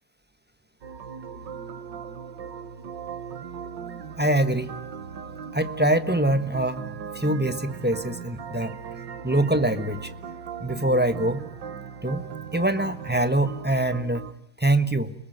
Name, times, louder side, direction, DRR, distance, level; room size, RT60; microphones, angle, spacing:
sound 1, 0.8-14.3, right 7 dB, 65° right, 2.0 m, -38 dB
voice 1, 4.2-4.7 5.5-6.8 7.1-8.8 9.2-10.1 10.6-11.4 12.0-12.2 12.5-14.3 14.6-15.1, right 1 dB, 5° right, 10 dB, 1.0 m, -24 dB
30.0 x 21.5 x 9.2 m, 0.77 s
omnidirectional pair, 2.1 m